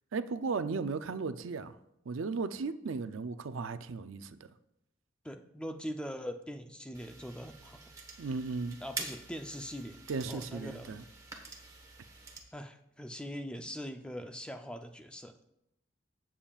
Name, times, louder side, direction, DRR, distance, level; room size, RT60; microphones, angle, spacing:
voice 1, 0.1-1.7 2.1-4.4 8.2-8.8 10.1-11.0, right 4 dB, 80° right, 11 dB, 0.5 m, -35 dB
voice 2, 5.2-7.9 8.8-10.0 10.3-11.0 12.5-15.5, equal, 5° left, 6 dB, 0.5 m, -42 dB
sound 1, 6.9-12.4, right 3 dB, 15° right, 1.2 m, -46 dB
16.0 x 7.2 x 2.4 m, 0.83 s
head